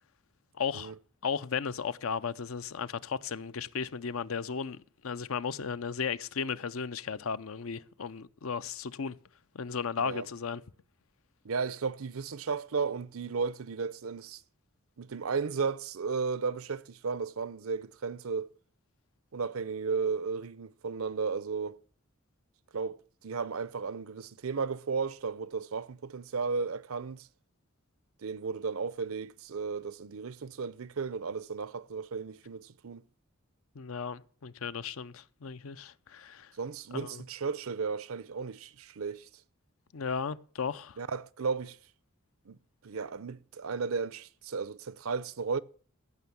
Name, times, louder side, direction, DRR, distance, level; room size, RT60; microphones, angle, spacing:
voice 1, 0.6-0.9 1.2-9.2 9.5-10.6 33.8-36.5 36.9-37.2 39.9-41.0, left 6 dB, 80° left, 0.6 m, -35 dB
voice 2, 11.4-14.4 15.0-18.5 19.3-21.8 22.7-27.3 28.2-33.0 36.6-39.3 41.0-41.8 42.5-42.6 42.8-45.6, right 5 dB, 85° right, 0.6 m, -34 dB
15.5 x 6.0 x 7.0 m
head